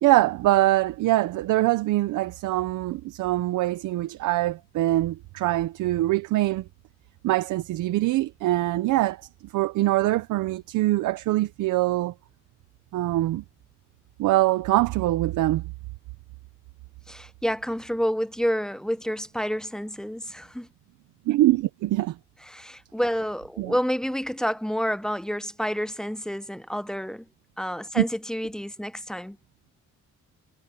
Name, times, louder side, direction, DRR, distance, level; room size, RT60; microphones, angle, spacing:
voice 1, 0.0-6.6 7.2-9.2 9.5-12.1 12.9-13.4 14.2-15.6 21.3-22.1 23.6-23.7 28.0-28.1, right 16 dB, 90° right, 0.8 m, -23 dB
voice 2, 17.1-20.7 22.5-27.3 27.6-29.4, equal, ahead, 0.6 m, -29 dB
cardioid pair, 90°, 30 cm